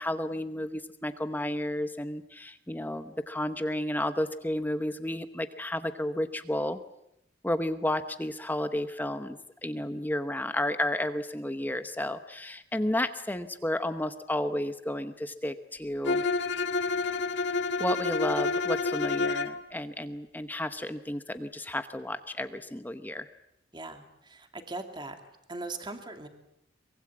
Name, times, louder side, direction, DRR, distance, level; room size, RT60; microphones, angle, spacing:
voice 1, 0.0-6.8 7.4-16.2 17.8-23.3, left 1 dB, 10° left, 9 dB, 0.9 m, -32 dB
Bowed string instrument, 16.0-19.6, left 4 dB, 70° left, 1.8 m, -28 dB
voice 2, 23.7-25.1 25.5-26.3, right 2 dB, 25° right, 6 dB, 2.5 m, -39 dB
23.5 x 22.5 x 8.6 m, 0.81 s
head